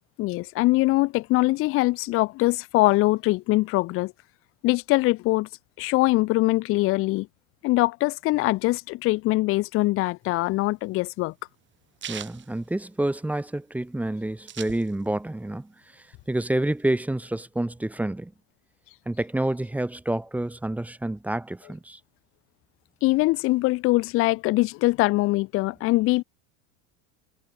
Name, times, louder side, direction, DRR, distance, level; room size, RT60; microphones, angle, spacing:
voice 1, 0.2-4.1 4.6-5.5 5.8-7.3 7.6-11.3 23.0-26.2, left 20 dB, 35° left, 0.5 m, -22 dB
sound 1, 10.3-13.4 13.8-13.9 14.0-15.3 15.7-16.8, right 10 dB, 30° right, 2.0 m, -41 dB
voice 2, 12.1-15.7 16.3-18.3 19.1-22.0, right 1 dB, 5° right, 0.8 m, -28 dB
supercardioid pair, 125°, 40 cm